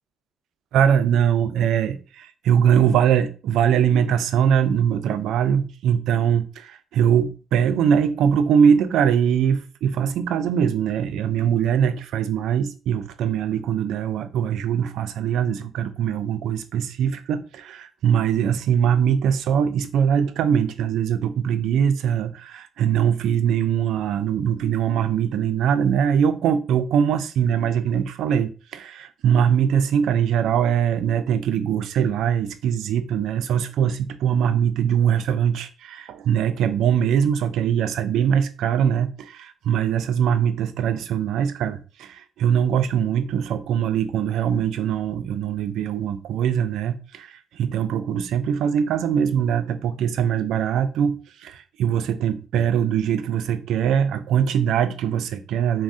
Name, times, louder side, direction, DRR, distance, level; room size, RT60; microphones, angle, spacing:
voice 1, 0.7-55.8, right 8 dB, 80° right, 0.3 m, -22 dB
3.4 x 2.0 x 2.6 m
cardioid pair, 90°, 0 cm